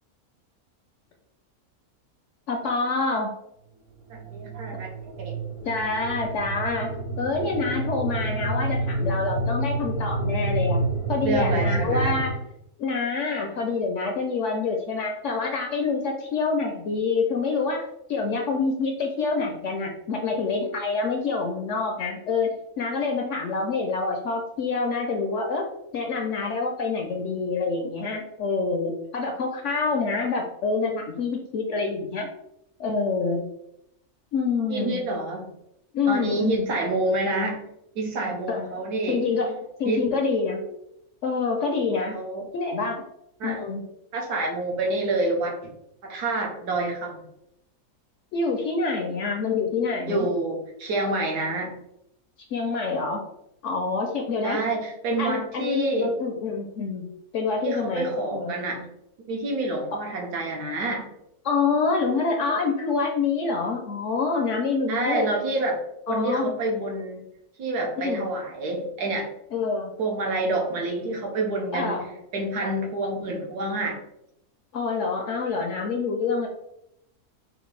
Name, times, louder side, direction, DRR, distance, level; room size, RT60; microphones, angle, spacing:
voice 1, 2.5-3.3 5.6-6.9 7.2-10.8 11.1-12.3 12.8-22.5 22.8-25.6 25.9-32.3 32.8-33.4 34.3-35.0 35.9-36.7 38.5-38.7 39.1-40.6 41.2-42.2 42.5-43.0 43.4-43.8 48.3-50.3 52.5-53.2 53.6-54.6 55.2-57.0 57.3-58.5 61.4-65.3 66.1-66.5 68.0-68.3 69.5-69.9 71.7-72.1 74.7-76.5, left 4 dB, 70° left, 2 dB, 0.7 m, -26 dB
sound 1, 4.1-12.3, right 2 dB, 60° right, 1.0 m, -28 dB
voice 2, 4.1-4.9 5.2-5.4 11.2-12.2 34.7-35.5 36.1-37.7 37.9-39.2 39.8-40.1 42.1-42.5 43.4-43.6 44.1-45.7 46.0-47.2 50.1-51.8 54.4-56.1 57.6-58.9 59.3-61.1 64.9-65.8 66.1-67.2 67.6-69.3 70.0-71.9 72.3-74.0, right 2 dB, 85° right, 1 dB, 1.4 m, -28 dB
4.3 x 2.5 x 3.1 m, 0.81 s
omnidirectional pair, 1.6 m